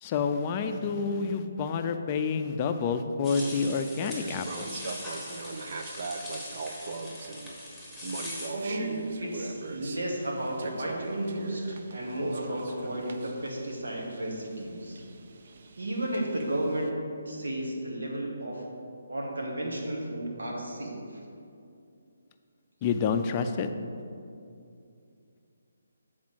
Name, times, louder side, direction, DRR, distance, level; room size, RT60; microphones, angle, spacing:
voice 1, 0.0-4.7 22.8-23.7, left 5 dB, 30° left, 7 dB, 0.4 m, -28 dB
sound 1, 3.2-8.5, left 1 dB, ahead, 1.3 m, -41 dB
sound 2, 4.0-16.9, right 3 dB, 50° right, 0.5 m, -41 dB
voice 2, 8.5-15.0 15.8-16.9 17.2-18.6 19.1-21.0, right 1 dB, 75° right, -1 dB, 1.6 m, -33 dB
7.3 x 4.3 x 6.2 m, 2.5 s
figure-of-eight pair, 150°, 0 cm